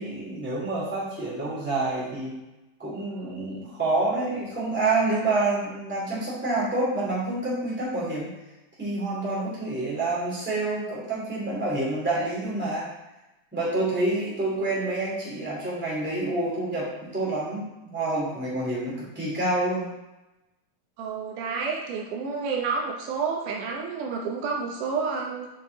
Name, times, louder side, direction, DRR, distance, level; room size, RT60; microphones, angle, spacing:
voice 1, 0.0-2.4 2.8-8.3 8.8-12.9 13.5-19.9, right 2 dB, 5° right, -7 dB, 2.2 m, -28 dB
voice 2, 21.0-25.5, right 5 dB, 80° right, 0 dB, 2.3 m, -29 dB
8.1 x 4.8 x 4.0 m, 1.0 s
omnidirectional pair, 3.7 m